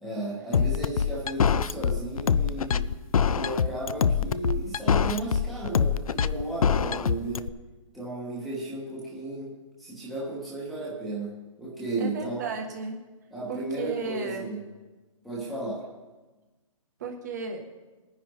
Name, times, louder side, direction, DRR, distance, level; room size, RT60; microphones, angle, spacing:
voice 1, 0.0-2.8 3.3-7.5 7.9-9.5 9.8-11.3 11.6-12.5 13.3-14.6 15.2-15.8, right 2 dB, ahead, -8 dB, 1.1 m, -34 dB
sound 1, 0.5-7.5, left 7 dB, 85° left, 0.5 m, -24 dB
voice 2, 12.0-13.0 13.5-14.5 17.0-17.6, right 4 dB, 30° right, 2 dB, 1.4 m, -34 dB
20.0 x 10.0 x 3.0 m, 1.2 s
hypercardioid pair, 170°, 18 cm